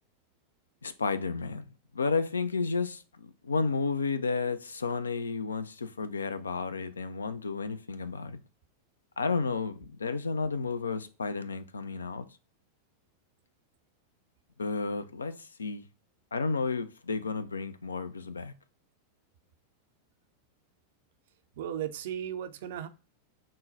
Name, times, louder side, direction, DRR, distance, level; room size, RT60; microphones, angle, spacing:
voice 1, 0.8-1.6 1.9-8.4 9.2-12.3 14.6-15.8 16.3-18.5, left 4 dB, 75° left, 0.3 m, -32 dB
voice 2, 21.6-22.9, right 10 dB, 55° right, 0.4 m, -35 dB
3.8 x 2.1 x 3.7 m
figure-of-eight pair, 90°, 0 cm